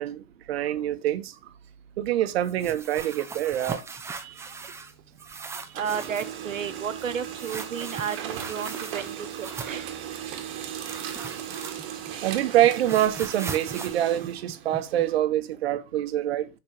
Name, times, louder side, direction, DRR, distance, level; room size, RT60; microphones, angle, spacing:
voice 1, 0.0-1.4 2.0-3.8 4.2-4.4 12.2-16.5, right 12 dB, 50° right, 1.1 m, -25 dB
sound 1, 2.4-4.9 5.2-6.4 7.4-9.9 10.8-12.1 12.4-15.0, right 4 dB, 5° right, 0.7 m, -39 dB
Printer, 4.1-5.3 5.6-15.2, right 9 dB, 30° right, 1.6 m, -37 dB
voice 2, 5.7-9.1 9.6-9.9, right 7 dB, 70° right, 1.2 m, -32 dB
6.3 x 5.5 x 7.1 m
figure-of-eight pair, 110°, 40 cm